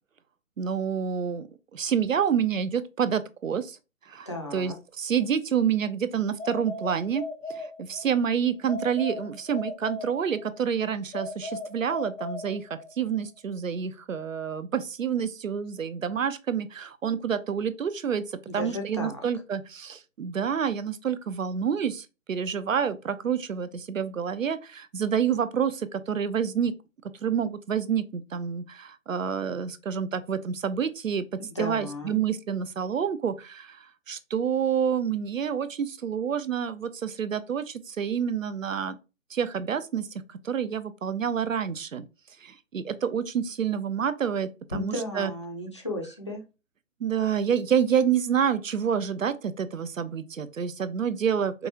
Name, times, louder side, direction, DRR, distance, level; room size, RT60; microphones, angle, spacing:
voice 1, 0.6-3.8 4.1-26.7 27.2-31.3 31.6-39.0 39.3-42.1 42.4-45.3 47.0-51.7, right 7 dB, 70° right, 0.6 m, -28 dB
voice 2, 4.3-4.7 18.5-19.2 31.5-32.2 44.7-46.4, left 1 dB, 20° left, 0.5 m, -34 dB
sound 1, 6.4-8.2 8.7-10.6 11.1-13.0, left 3 dB, 65° left, 0.9 m, -37 dB
5.2 x 2.4 x 2.8 m
figure-of-eight pair, 140°, 41 cm